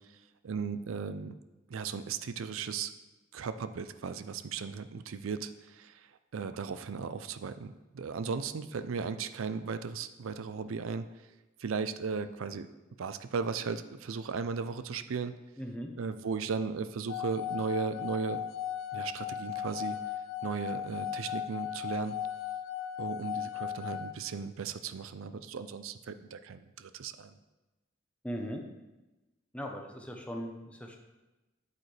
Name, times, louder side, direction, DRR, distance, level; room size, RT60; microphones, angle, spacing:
voice 1, 0.4-1.3 1.7-2.9 3.3-6.1 6.3-11.1 11.6-12.7 13.0-15.3 16.0-18.4 18.9-20.0 20.4-22.2 23.0-27.3, right 5 dB, 85° right, 11 dB, 0.5 m, -36 dB
voice 2, 15.6-15.9 28.2-28.6 29.5-31.0, equal, 5° left, 2 dB, 0.8 m, -39 dB
sound 1, 17.1-24.1, left 10 dB, 80° left, 0.5 m, -37 dB
8.5 x 8.2 x 3.3 m, 1.1 s
head